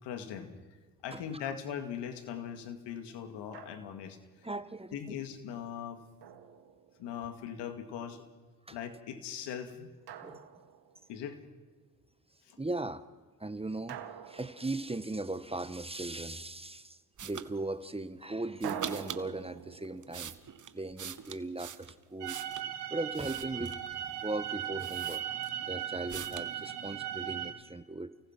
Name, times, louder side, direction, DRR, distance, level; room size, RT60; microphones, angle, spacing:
voice 1, 0.0-0.5 1.0-4.2 4.9-6.0 7.0-8.2 8.7-9.9 10.3-10.4 11.1-11.4 12.4-12.6, left 8 dB, 85° left, 7 dB, 2.2 m, -40 dB
voice 2, 1.1-1.5 4.4-5.1 8.7-8.8 10.2-10.5 12.6-13.1 13.4-14.0 14.3-20.3 20.7-22.4 22.9-23.8 24.2-25.2 25.7-28.1, right 2 dB, 15° right, 12 dB, 1.3 m, -38 dB
Drum, 3.5-4.2 6.2-7.3 10.1-11.2 13.9-15.5 18.6-21.6, right 9 dB, 70° right, 1.7 m, -46 dB
sound 1, 17.2-17.5 18.6-19.3 19.8-22.7 23.1-23.9 24.5-24.6 24.8-25.7 26.1-26.5, right 8 dB, 45° right, 1.2 m, -43 dB
sound 2, 22.2-27.5, right 11 dB, 90° right, 2.4 m, -38 dB
29.5 x 18.5 x 6.1 m, 1.4 s
supercardioid pair, 60°, 41 cm